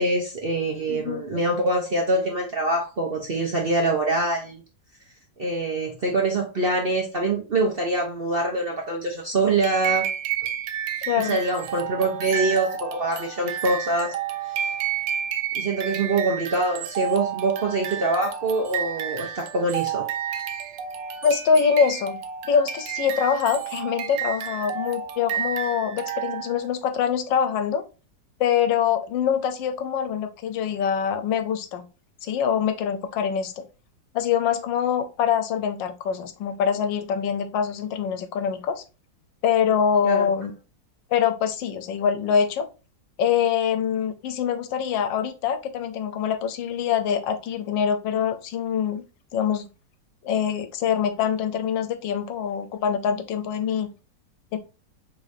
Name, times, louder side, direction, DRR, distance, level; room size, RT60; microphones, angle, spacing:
voice 1, 0.0-4.6 5.4-10.1 11.2-14.1 15.5-20.0 40.0-40.3, right 2 dB, 50° right, 1 dB, 0.7 m, -24 dB
voice 2, 0.9-1.2 11.1-11.4 21.2-22.2 22.5-27.8 28.4-31.9 32.2-33.6 34.1-38.8 39.4-40.5 41.1-42.7 43.2-49.0 49.3-49.7 50.2-53.9 54.5-54.6, left 7 dB, 90° left, 8 dB, 1.4 m, -24 dB
sound 1, 9.6-26.7, right 9 dB, 80° right, 1.3 m, -31 dB
4.9 x 3.6 x 2.6 m, 0.32 s
omnidirectional pair, 2.0 m